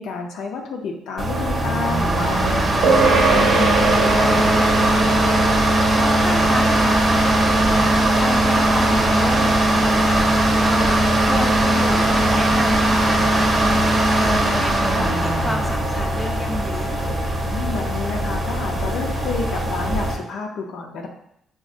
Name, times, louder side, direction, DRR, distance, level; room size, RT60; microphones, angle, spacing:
voice 1, 0.0-5.0 17.4-21.1, left 4 dB, 80° left, 2 dB, 0.5 m, -30 dB
sound 1, 1.2-20.1, right 1 dB, 40° right, 0.6 m, -19 dB
sound 2, 2.8-12.5, right 4 dB, 80° right, 0.7 m, -25 dB
voice 2, 6.0-17.1, left 1 dB, 5° left, 1 dB, 0.5 m, -31 dB
5.0 x 2.1 x 2.5 m, 0.74 s
cardioid pair, 90°, 0 cm